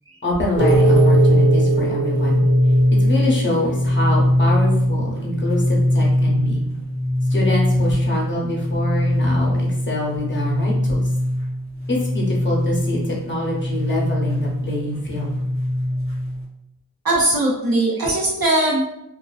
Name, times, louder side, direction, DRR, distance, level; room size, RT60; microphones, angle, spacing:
voice 1, 0.2-2.4 3.0-6.6 7.3-11.1 11.9-15.4, left 1 dB, 35° left, -3 dB, 0.7 m, -25 dB
sound 1, 0.6-16.4, equal, 35° right, 0.8 m, -20 dB
voice 2, 17.0-18.9, right 1 dB, 75° right, -3 dB, 0.8 m, -19 dB
2.4 x 2.2 x 2.4 m, 0.86 s
wide cardioid pair, 70°, 35 cm